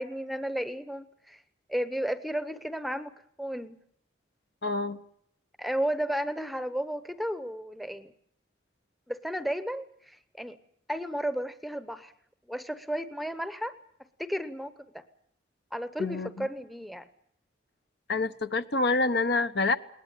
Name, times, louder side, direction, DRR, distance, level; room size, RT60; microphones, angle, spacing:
voice 1, 0.0-1.4 1.7-3.8 5.6-8.1 9.1-10.6 10.9-12.1 12.5-13.7 14.2-14.7 15.7-17.0, equal, ahead, 11 dB, 0.9 m, -33 dB
voice 2, 4.6-5.0 16.0-16.5 18.1-19.8, left 3 dB, 60° left, 10 dB, 1.1 m, -27 dB
21.0 x 19.0 x 9.0 m, 0.69 s
head